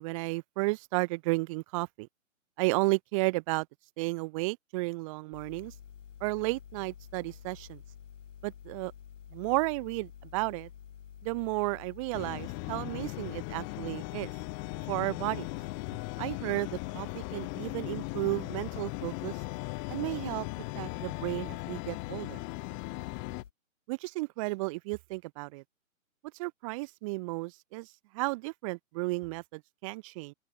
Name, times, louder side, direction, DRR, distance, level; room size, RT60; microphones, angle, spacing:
voice 1, 0.0-2.1 2.6-3.7 4.0-5.7 6.2-7.8 8.4-8.9 9.3-10.7 11.2-14.3 14.9-15.5 16.2-19.3 19.9-20.5 20.7-22.4 23.9-25.6 26.4-30.3, right 25 dB, 25° right, 1.3 m, -33 dB
sound 1, 5.3-23.5, left 8 dB, 60° left, 5.6 m, -50 dB
sound 2, 12.1-23.4, left 34 dB, 25° left, 3.9 m, -38 dB
open air
hypercardioid pair, 145°, 41 cm